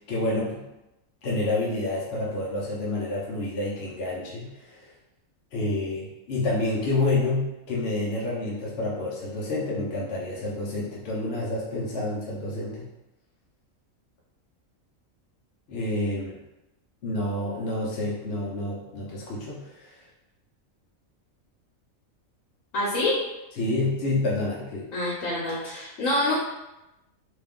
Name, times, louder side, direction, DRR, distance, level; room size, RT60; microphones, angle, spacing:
voice 1, 0.1-0.6 1.2-4.8 5.5-12.8 15.7-16.4 17.0-19.6 23.6-24.9, left 2 dB, 55° left, -5 dB, 0.8 m, -28 dB
voice 2, 22.7-23.2 24.9-26.3, left 1 dB, 75° left, -5 dB, 1.2 m, -26 dB
3.2 x 2.3 x 3.5 m, 0.96 s
omnidirectional pair, 1.4 m